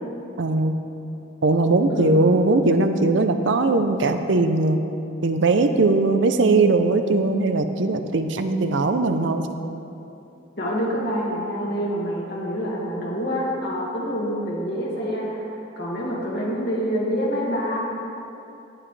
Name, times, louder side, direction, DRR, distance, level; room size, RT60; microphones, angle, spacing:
voice 1, 0.4-0.8 1.4-4.8 5.2-9.5, right 3 dB, 65° right, 8 dB, 0.6 m, -20 dB
voice 2, 1.9-2.4 10.6-17.8, equal, 55° left, -5 dB, 2.2 m, -27 dB
17.5 x 7.3 x 3.3 m, 2.8 s
head